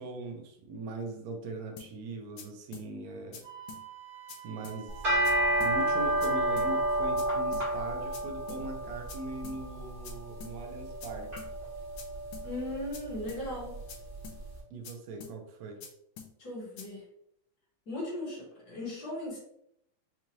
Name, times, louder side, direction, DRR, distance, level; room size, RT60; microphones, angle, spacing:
voice 1, 0.0-3.4 4.4-5.1 5.6-11.3 14.7-15.8, right 2 dB, 75° right, 3 dB, 1.7 m, -40 dB
sound 1, 1.8-1.9 2.4-2.5 2.7-2.9 3.3-3.4 3.7-3.8 4.3-4.4 4.6-4.8 5.2-5.3 5.6-5.7 6.2-6.3 6.6-6.7 7.2-7.3 7.5-7.7 8.1-8.2 8.5-8.6 9.1-9.2 9.4-9.6 10.0-10.1 10.4-10.5 11.0-11.1 11.4-11.5 12.0-12.1 12.3-12.5 12.9-13.0 13.3-13.4 13.9-14.0 14.2-14.4 14.8-14.9 15.2-15.3 15.8-15.9 16.2-16.3 16.8-16.9, left 7 dB, 75° left, 1.5 m, -46 dB
Wind instrument woodwind instrument, 3.4-7.2, right 12 dB, 55° right, 1.9 m, -47 dB
sound 2, 4.9-14.2, right 1 dB, 30° right, 0.9 m, -31 dB
voice 2, 12.4-13.7 16.4-17.0 17.9-19.4, left 1 dB, 45° left, -4 dB, 1.4 m, -37 dB
5.7 x 2.4 x 3.0 m, 0.76 s
omnidirectional pair, 3.6 m